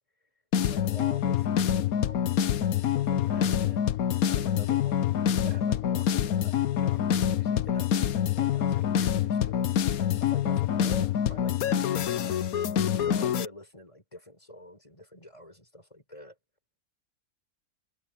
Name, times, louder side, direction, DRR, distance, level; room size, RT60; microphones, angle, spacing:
sound 1, 0.5-13.5, left 9 dB, 75° left, 1.2 m, -26 dB
voice 1, 0.6-4.0 4.3-12.5 13.0-16.4, equal, 20° left, 6.2 m, -47 dB
omnidirectional pair, 1.6 m